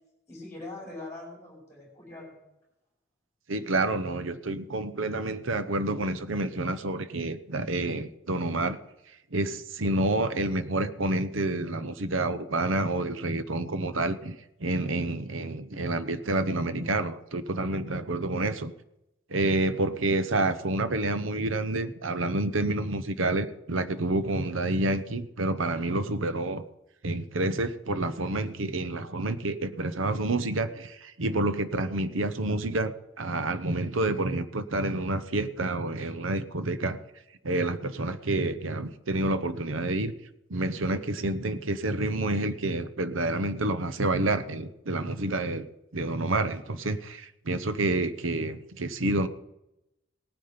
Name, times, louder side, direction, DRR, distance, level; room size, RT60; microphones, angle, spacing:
voice 1, 0.3-2.4, left 2 dB, 15° left, -3 dB, 5.4 m, -42 dB
voice 2, 3.5-8.8 9.3-18.7 19.3-26.6 27.0-37.0 37.4-40.1 40.5-45.7 45.9-49.3, right 2 dB, 75° right, 13 dB, 0.9 m, -28 dB
17.5 x 9.6 x 5.2 m, 0.88 s
head